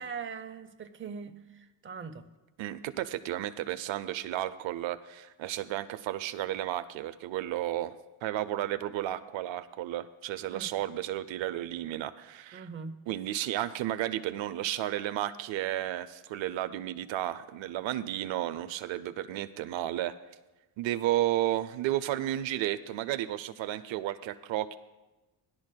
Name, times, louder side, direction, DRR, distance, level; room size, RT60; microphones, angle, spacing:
voice 1, 0.0-2.3 10.5-10.7 12.5-13.0, right 5 dB, 25° right, 7 dB, 0.6 m, -41 dB
voice 2, 2.6-8.0 8.2-12.7 13.1-20.1 20.8-24.8, right 13 dB, 80° right, 11 dB, 0.5 m, -33 dB
16.0 x 11.0 x 2.2 m, 1.1 s
cardioid pair, 95°, 46 cm